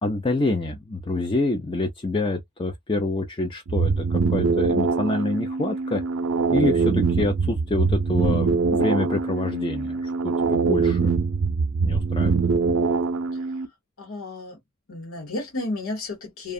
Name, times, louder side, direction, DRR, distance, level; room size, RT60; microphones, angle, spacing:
voice 1, 0.0-6.0 6.5-11.1 11.8-12.8, left 2 dB, 25° left, 0.4 m, -27 dB
sound 1, 3.7-13.7, right 4 dB, 75° right, 0.5 m, -23 dB
voice 2, 14.0-14.6 14.9-16.5, left 2 dB, 70° left, 1.2 m, -32 dB
2.4 x 2.3 x 2.6 m
head